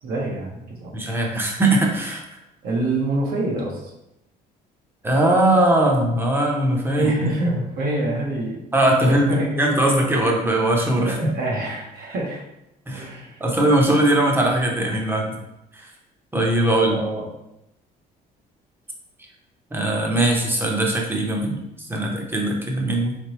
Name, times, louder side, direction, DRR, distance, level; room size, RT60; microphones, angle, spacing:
voice 1, 0.0-0.9 2.6-3.8 7.0-8.6 9.0-9.5 11.0-12.4 12.9-13.4 16.6-17.2, right 2 dB, 65° right, -3 dB, 1.1 m, -26 dB
voice 2, 0.9-2.2 5.0-7.1 8.7-11.3 12.9-13.1 13.4-15.4 15.7-15.9 16.3-17.0 19.7-21.6 21.9-23.2, right 1 dB, 15° right, 0 dB, 0.8 m, -20 dB
3.8 x 3.4 x 3.0 m, 0.88 s
cardioid pair, 110°, 17 cm